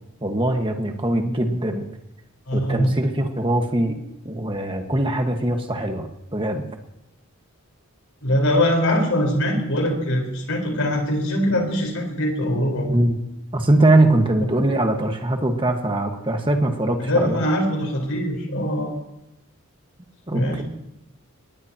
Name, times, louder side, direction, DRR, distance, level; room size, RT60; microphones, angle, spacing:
voice 1, 0.2-1.9 2.5-4.0 4.2-6.6 12.9-13.2 13.5-17.4 20.3-20.6, right 1 dB, 25° right, 4 dB, 1.6 m, -21 dB
voice 2, 2.5-2.9 8.2-12.9 17.0-19.0 20.3-20.6, equal, 70° left, 1 dB, 4.5 m, -22 dB
21.0 x 19.5 x 3.0 m, 0.88 s
head